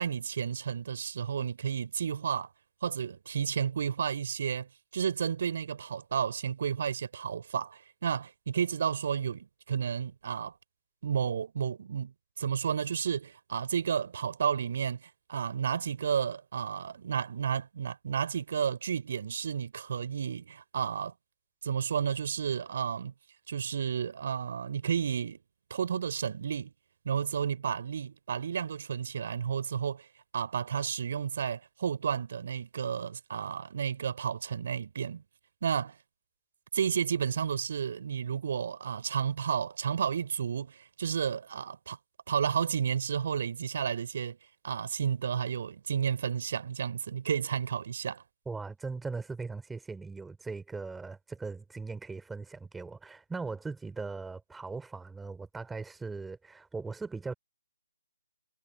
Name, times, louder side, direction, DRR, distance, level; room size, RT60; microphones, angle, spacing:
voice 1, 0.0-2.5 2.8-10.5 11.0-21.1 21.6-23.1 23.5-25.4 25.7-26.7 27.0-30.1 30.3-35.2 35.6-36.0 36.7-42.0 42.3-44.4 44.6-48.2, right 7 dB, 40° right, 4.9 m, -32 dB
voice 2, 48.5-57.3, right 4 dB, 5° right, 4.4 m, -39 dB
figure-of-eight pair, 145°, 0 cm